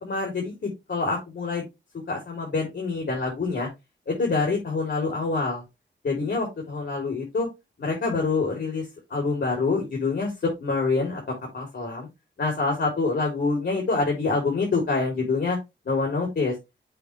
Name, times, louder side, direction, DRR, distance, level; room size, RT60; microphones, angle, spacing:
voice 1, 0.0-1.6 2.1-3.7 4.1-5.6 6.0-7.5 7.8-11.2 11.5-12.1 12.4-15.6 15.9-16.5, left 3 dB, 60° left, 0 dB, 3.5 m, -26 dB
6.9 x 5.2 x 3.3 m, 0.22 s
wide cardioid pair, 90°, 20 cm